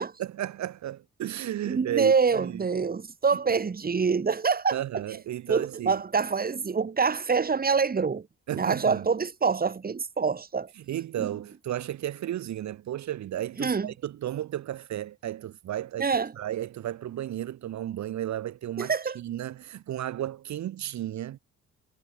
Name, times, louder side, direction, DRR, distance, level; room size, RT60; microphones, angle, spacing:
voice 1, 0.2-2.7 4.7-6.0 8.5-9.1 10.8-16.1 16.4-21.4, right 12 dB, 65° right, 1.3 m, -33 dB
voice 2, 1.6-4.8 5.5-8.3 8.5-10.7 11.2-11.3 13.6-13.9 16.0-16.3 18.8-19.2, right 5 dB, 30° right, 2.1 m, -26 dB
cardioid pair, 90°, 30 cm